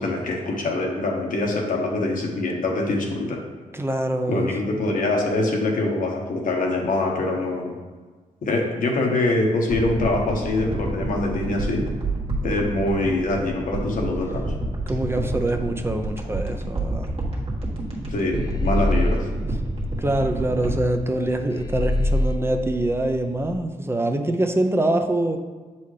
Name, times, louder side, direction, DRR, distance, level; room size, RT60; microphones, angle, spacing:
voice 1, 0.0-3.4 4.3-7.7 8.4-11.8 12.4-14.4 18.1-19.2, left 2 dB, 70° left, 0 dB, 1.2 m, -24 dB
voice 2, 3.7-4.8 14.9-17.1 20.0-25.4, right 1 dB, 15° right, 5 dB, 0.6 m, -24 dB
sound 1, 9.7-22.2 22.5-22.6, right 2 dB, 40° right, 1.5 m, -29 dB
sound 2, 18.3-20.5 21.5-23.5, left 1 dB, 30° left, 0.5 m, -25 dB
7.0 x 4.2 x 3.2 m, 1.4 s
cardioid pair, 60°, 15 cm